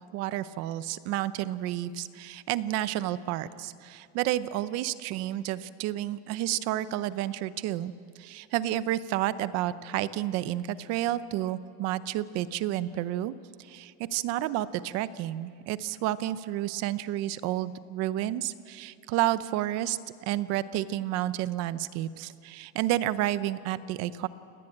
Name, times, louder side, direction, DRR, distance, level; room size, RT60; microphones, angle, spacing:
voice 1, 0.1-7.9 8.2-24.3, right 13 dB, 40° right, 15 dB, 0.7 m, -30 dB
28.0 x 19.0 x 8.8 m, 2.4 s
cardioid pair, 175°, 39 cm